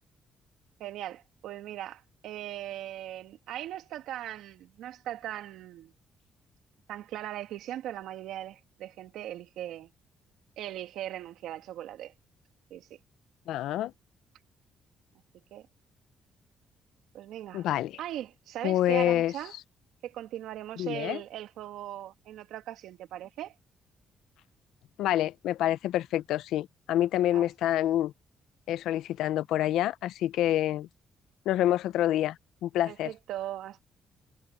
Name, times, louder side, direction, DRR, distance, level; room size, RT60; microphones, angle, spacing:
voice 1, 0.8-5.9 6.9-9.9 10.6-12.1 12.7-13.0 15.5-15.7 17.1-17.7 18.0-19.5 20.0-23.5 27.3-27.5 32.9-33.8, right 12 dB, 85° right, 2.4 m, -39 dB
voice 2, 13.5-13.9 17.5-18.0 18.6-19.3 20.8-21.2 25.0-28.1 28.7-30.9 31.5-32.4 32.6-33.1, left 13 dB, 85° left, 0.6 m, -27 dB
cardioid pair, 90°, 0 cm